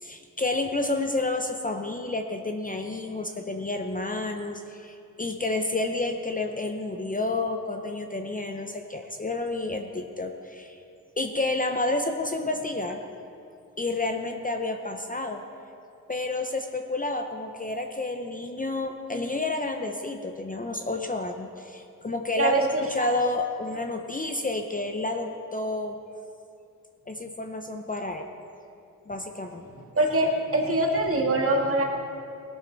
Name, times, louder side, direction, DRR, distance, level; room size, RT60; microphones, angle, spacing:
voice 1, 0.0-10.8 11.2-13.0 13.8-15.4 16.1-26.0 27.1-28.3 29.1-29.6, left 2 dB, 25° left, 4 dB, 0.7 m, -30 dB
voice 2, 22.4-23.1 29.9-31.8, right 2 dB, 40° right, 0 dB, 2.0 m, -23 dB
17.5 x 11.5 x 4.0 m, 2.6 s
wide cardioid pair, 100°, 35 cm